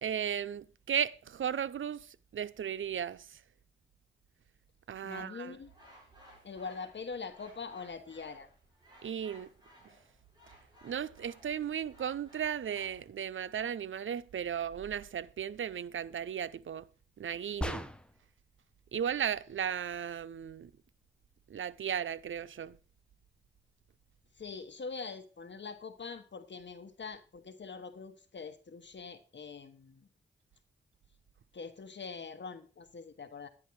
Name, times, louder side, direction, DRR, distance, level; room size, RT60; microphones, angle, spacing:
voice 1, 0.0-2.1 2.3-3.3 4.9-5.6 9.0-9.5 10.8-16.9 17.2-17.9 18.9-20.7 21.5-22.8, right 8 dB, 80° right, 0.6 m, -35 dB
voice 2, 5.0-5.7 6.4-8.5 24.4-30.1 31.5-33.5, left 4 dB, 65° left, 1.3 m, -43 dB
sound 1, 5.6-13.1, right 1 dB, 20° right, 7.4 m, -59 dB
sound 2, 17.6-18.3, equal, 5° left, 0.9 m, -37 dB
11.0 x 9.9 x 4.7 m
cardioid pair, 65°, 20 cm